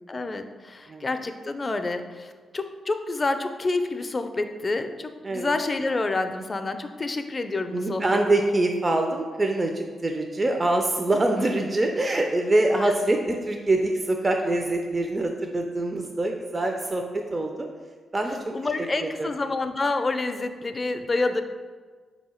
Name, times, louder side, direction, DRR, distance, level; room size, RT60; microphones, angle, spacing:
voice 1, 0.1-8.0 12.7-12.9 18.5-21.4, left 3 dB, 35° left, 8 dB, 0.4 m, -28 dB
voice 2, 5.2-5.5 7.7-17.7 18.1-18.4 18.8-19.3, right 2 dB, 30° right, 3 dB, 0.4 m, -24 dB
4.5 x 2.7 x 4.2 m, 1.5 s
supercardioid pair, 55°, 0 cm